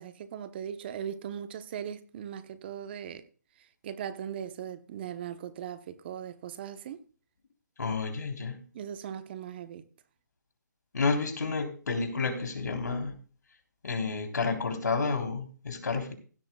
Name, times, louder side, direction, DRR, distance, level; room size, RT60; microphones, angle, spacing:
voice 1, 0.0-3.2 3.8-7.0 8.7-9.9, right 9 dB, 35° right, 0.9 m, -39 dB
voice 2, 7.8-8.6 10.9-13.1 13.8-16.1, left 4 dB, 65° left, 3.7 m, -30 dB
16.5 x 12.0 x 2.3 m
figure-of-eight pair, 150°, 10 cm